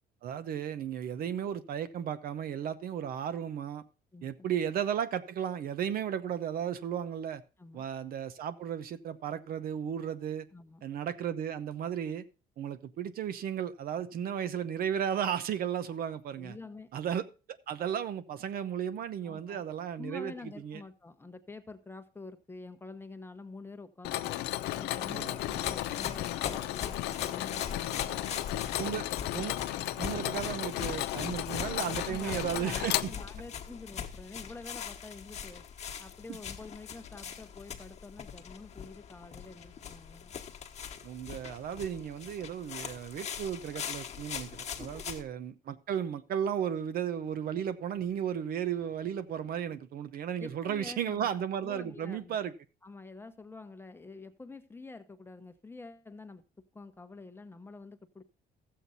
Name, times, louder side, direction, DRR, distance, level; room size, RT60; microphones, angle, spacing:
voice 1, 0.2-3.8 4.2-7.4 7.7-10.5 10.8-12.2 12.6-16.6 16.9-20.3 20.6-20.8 25.1-25.3 28.8-29.0 29.3-29.6 30.0-33.1 41.0-52.5, right 9 dB, 60° right, 0.8 m, -34 dB
voice 2, 4.1-4.5 7.6-7.9 10.5-10.8 16.3-16.9 19.2-19.6 20.0-24.4 24.8-29.0 31.8-35.6 36.0-40.4 44.8-45.1 49.7-49.8 50.4-52.4 52.8-56.4 56.7-58.2, left 3 dB, 15° left, 1.0 m, -47 dB
Mechanisms, 24.0-33.6, left 15 dB, 85° left, 0.6 m, -34 dB
sound 1, 25.4-45.2, left 7 dB, 40° left, 1.3 m, -42 dB
13.5 x 7.7 x 4.0 m
cardioid pair, 110°, 17 cm